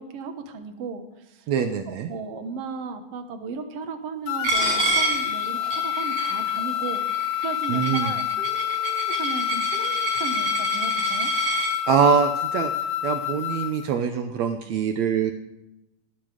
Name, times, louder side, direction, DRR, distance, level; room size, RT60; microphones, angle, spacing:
voice 1, 0.0-1.5 1.9-7.0 7.4-11.3, right 4 dB, 60° right, 6 dB, 1.7 m, -35 dB
voice 2, 1.5-2.1 7.7-8.1 11.9-12.7 13.0-15.3, right 7 dB, 80° right, 7 dB, 1.6 m, -23 dB
sound 1, 4.3-13.8, left 12 dB, 75° left, 1.9 m, -27 dB
Coin (dropping), 4.4-11.7, right 4 dB, 40° right, 5.7 m, -29 dB
18.5 x 11.0 x 5.0 m, 0.93 s
omnidirectional pair, 4.2 m